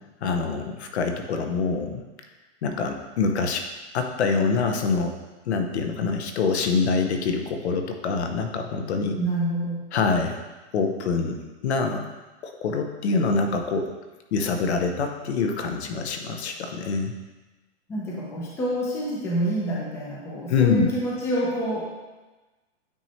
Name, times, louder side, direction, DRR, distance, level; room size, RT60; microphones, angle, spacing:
voice 1, 0.2-2.0 2.6-3.7 3.9-5.2 5.4-9.2 9.9-10.4 10.7-12.1 12.4-13.9 14.3-17.1 20.5-20.9, left 4 dB, 70° left, 5 dB, 1.0 m, -25 dB
voice 2, 9.2-9.8 17.9-21.8, right 1 dB, 5° left, -4 dB, 0.6 m, -27 dB
9.2 x 3.2 x 4.2 m, 1.2 s
hypercardioid pair, 165°, 35 cm